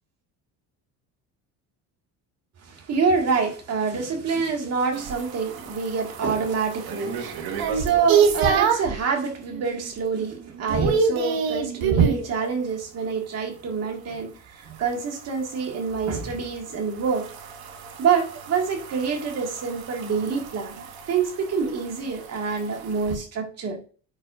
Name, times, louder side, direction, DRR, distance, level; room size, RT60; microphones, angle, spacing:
voice 1, 2.6-17.3 18.0-23.8, right 5 dB, 40° right, 1.9 m, -26 dB
sound 1, 4.9-9.0 9.5-9.9 10.2-12.3 14.8-23.2, right 6 dB, 65° right, 1.5 m, -27 dB
9.3 x 5.3 x 2.5 m
cardioid pair, 165°, 39 cm